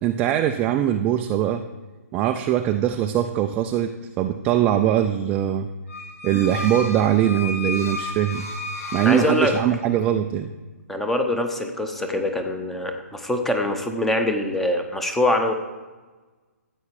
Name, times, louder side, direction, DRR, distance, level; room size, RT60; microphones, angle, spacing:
voice 1, 0.0-1.7 2.1-5.7 6.2-8.5 8.9-10.5, right 10 dB, 15° right, 6 dB, 0.3 m, -22 dB
sound 1, 5.9-10.0, left 2 dB, 60° left, 2.4 m, -33 dB
voice 2, 9.0-9.5 10.9-15.5, left 1 dB, 5° left, 5 dB, 0.8 m, -24 dB
14.0 x 8.6 x 4.7 m, 1.2 s
hypercardioid pair, 155°, 9 cm